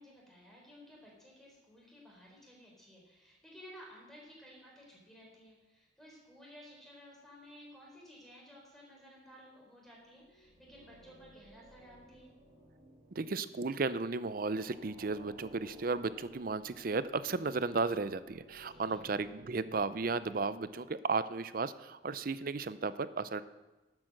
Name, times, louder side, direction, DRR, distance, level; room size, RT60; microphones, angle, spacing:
voice 1, 0.0-12.3 18.7-19.1, equal, ahead, -3 dB, 3.9 m, -55 dB
sound 1, 10.0-21.2, equal, 30° right, 2.5 m, -59 dB
voice 2, 13.2-23.4, right 4 dB, 50° right, 14 dB, 0.5 m, -34 dB
12.5 x 8.5 x 6.4 m, 1.1 s
head